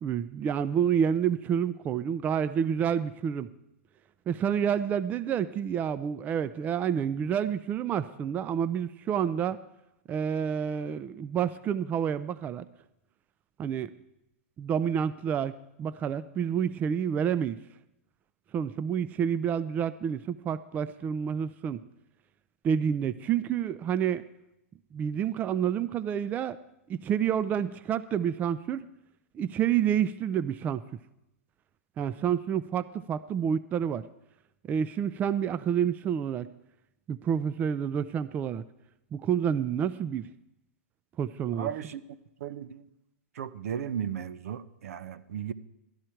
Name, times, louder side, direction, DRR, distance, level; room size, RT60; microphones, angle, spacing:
voice 1, 0.0-3.5 4.3-9.6 10.1-12.7 13.6-13.9 14.6-17.6 18.5-21.8 22.6-24.2 24.9-26.6 26.9-28.8 29.3-30.8 32.0-34.0 34.7-36.5 37.1-38.6 39.1-40.3 41.2-41.7, right 8 dB, 20° right, 16 dB, 0.4 m, -28 dB
voice 2, 41.6-42.9 43.4-45.5, right 9 dB, 75° right, 16 dB, 0.7 m, -36 dB
13.0 x 12.0 x 4.5 m, 0.86 s
hypercardioid pair, 135°, 8 cm